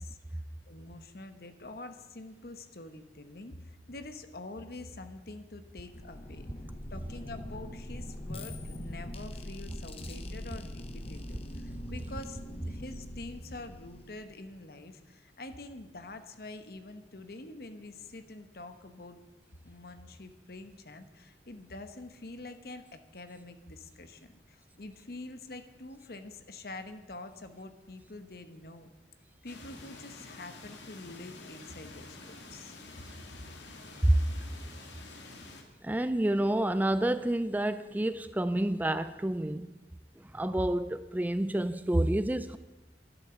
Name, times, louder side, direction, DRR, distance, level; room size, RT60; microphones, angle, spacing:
voice 1, 0.0-6.5 6.9-19.2 19.6-28.9 29.4-33.1, left 2 dB, 55° left, 9 dB, 1.1 m, -46 dB
sound 1, 5.8-14.3, left 1 dB, 35° left, 1.0 m, -42 dB
sound 2, 29.5-35.6, left 3 dB, 85° left, 2.0 m, -49 dB
voice 2, 35.8-39.7 40.3-42.6, right 1 dB, 10° right, 12 dB, 0.4 m, -28 dB
12.0 x 11.5 x 7.0 m, 1.1 s
head